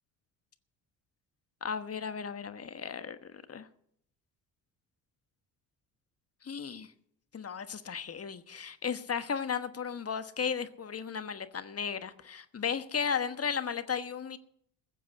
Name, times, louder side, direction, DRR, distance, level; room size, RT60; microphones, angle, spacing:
voice 1, 1.6-3.7 6.4-6.9 7.3-14.4, left 6 dB, 35° left, 1.3 m, -35 dB
15.0 x 7.5 x 8.2 m
hypercardioid pair, 55°, 41 cm